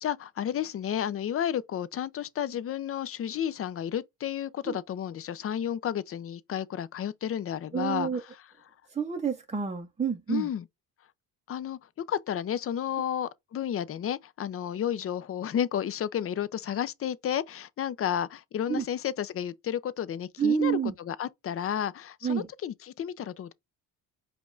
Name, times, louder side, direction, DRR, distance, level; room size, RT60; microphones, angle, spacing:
voice 1, 0.0-8.2 10.3-10.6 11.5-11.8 12.1-23.5, left 9 dB, 35° left, 0.4 m, -32 dB
voice 2, 7.7-8.2 8.9-10.5 18.7-18.8 20.4-20.9 22.2-22.5, right 7 dB, 15° right, 0.5 m, -28 dB
5.1 x 2.3 x 3.8 m
cardioid pair, 105°, 42 cm